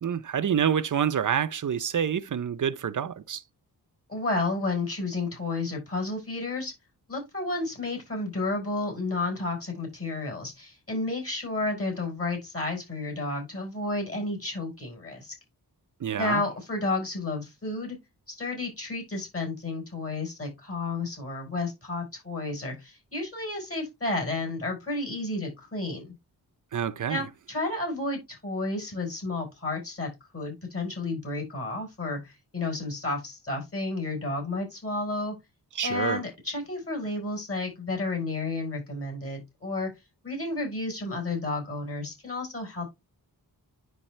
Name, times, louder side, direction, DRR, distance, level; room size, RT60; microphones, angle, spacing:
voice 1, 0.0-3.4 16.0-16.4 26.7-27.2 35.7-36.2, right 8 dB, 50° right, 0.7 m, -27 dB
voice 2, 4.1-6.7 7.1-15.3 16.2-18.0 18.3-26.1 27.1-35.3 35.8-39.9 40.2-42.9, left 2 dB, 35° left, 4.6 m, -31 dB
10.0 x 3.5 x 3.3 m
wide cardioid pair, 90°, 38 cm